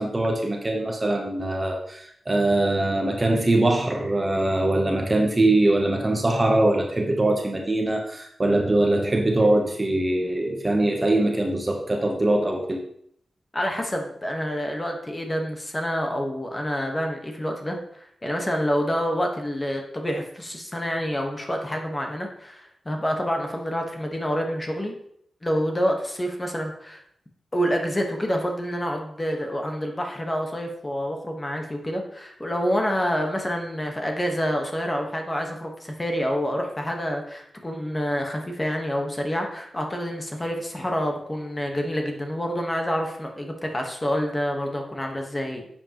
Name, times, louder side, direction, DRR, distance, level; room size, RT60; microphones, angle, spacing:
voice 1, 0.0-12.8, right 2 dB, 20° right, 2 dB, 0.9 m, -22 dB
voice 2, 13.5-24.9 25.4-27.0 27.5-45.7, equal, 15° left, 2 dB, 1.3 m, -27 dB
11.0 x 7.3 x 3.0 m, 0.70 s
wide cardioid pair, 155°, 0 cm